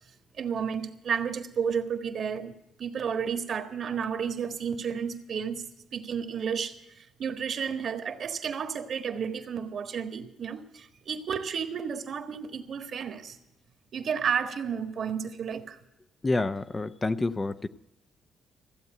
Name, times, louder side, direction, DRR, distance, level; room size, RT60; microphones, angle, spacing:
voice 1, 0.4-2.5 2.8-5.6 5.9-13.4 13.9-15.8, right 7 dB, 60° right, 1.5 m, -32 dB
voice 2, 16.2-17.7, left 2 dB, 25° left, 0.6 m, -28 dB
15.0 x 7.9 x 9.1 m
cardioid pair, 90°, 0 cm